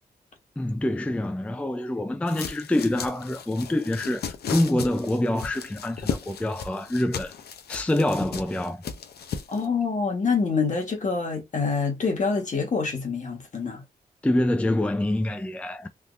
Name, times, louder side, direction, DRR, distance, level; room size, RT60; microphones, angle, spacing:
voice 1, 0.6-7.3 7.7-8.8 14.2-15.9, left 1 dB, 10° left, 0.4 m, -26 dB
sound 1, 2.3-9.7, left 7 dB, 80° left, 0.6 m, -36 dB
voice 2, 9.5-13.8, left 5 dB, 50° left, 1.3 m, -26 dB
3.4 x 2.7 x 2.5 m
cardioid pair, 85°, 16 cm